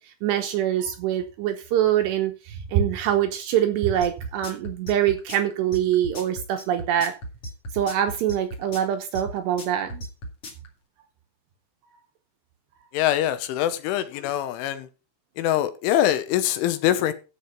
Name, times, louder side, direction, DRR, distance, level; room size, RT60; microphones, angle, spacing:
voice 1, 0.2-7.2 7.7-10.0, right 10 dB, 75° right, 2.7 m, -24 dB
sound 1, 4.0-10.7, equal, 45° left, 2.4 m, -36 dB
voice 2, 12.9-14.9 15.4-17.1, left 12 dB, 80° left, 3.3 m, -23 dB
13.5 x 4.8 x 5.9 m
omnidirectional pair, 5.7 m